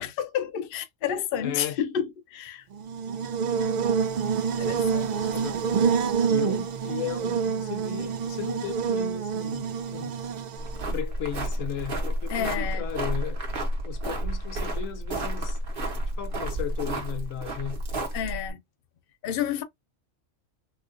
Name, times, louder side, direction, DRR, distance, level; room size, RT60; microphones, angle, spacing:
voice 1, 0.0-2.6 4.6-5.3 12.3-12.9 18.1-18.6 19.2-19.6, left 9 dB, 55° left, 0.8 m, -30 dB
voice 2, 1.4-1.8 5.3-6.0 6.3-10.2 10.9-13.4 13.8-15.6 16.2-17.8, left 10 dB, 85° left, 1.0 m, -36 dB
Buzz, 2.8-10.9, right 6 dB, 70° right, 0.4 m, -27 dB
sound 1, 10.6-18.5, right 1 dB, 50° right, 1.1 m, -31 dB
4.3 x 2.3 x 2.5 m
omnidirectional pair, 1.3 m